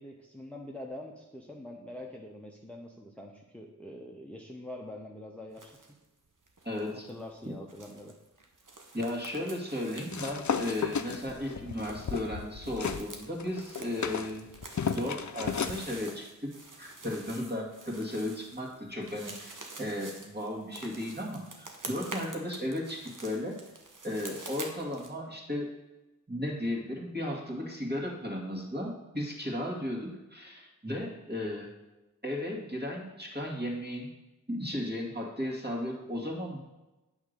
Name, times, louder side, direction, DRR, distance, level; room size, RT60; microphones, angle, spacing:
voice 1, 0.0-6.0 6.9-8.1, left 1 dB, 5° left, 0 dB, 0.8 m, -45 dB
sound 1, 5.5-6.0 6.2-25.1, right 2 dB, 80° right, 1.0 m, -47 dB
voice 2, 6.6-7.1 7.4-7.5 8.9-14.5 14.9-16.5 16.8-23.6 24.0-25.7 26.3-31.7 32.2-34.1 34.5-36.6, left 1 dB, 30° right, -3 dB, 2.2 m, -35 dB
sound 2, 10.1-13.1 13.4-15.8, left 6 dB, 65° left, 0.5 m, -34 dB
8.7 x 3.6 x 6.6 m, 1.0 s
wide cardioid pair, 40°, 31 cm